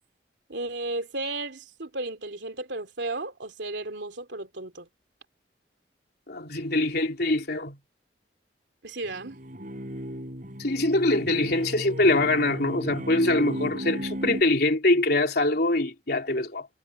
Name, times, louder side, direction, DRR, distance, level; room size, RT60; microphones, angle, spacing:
voice 1, 0.5-4.9 8.8-9.4, right 2 dB, 75° right, 2.9 m, -34 dB
voice 2, 6.3-7.8 10.6-16.7, left 2 dB, 60° left, 3.5 m, -24 dB
sound 1, 9.1-14.4, equal, 45° right, 5.0 m, -35 dB
head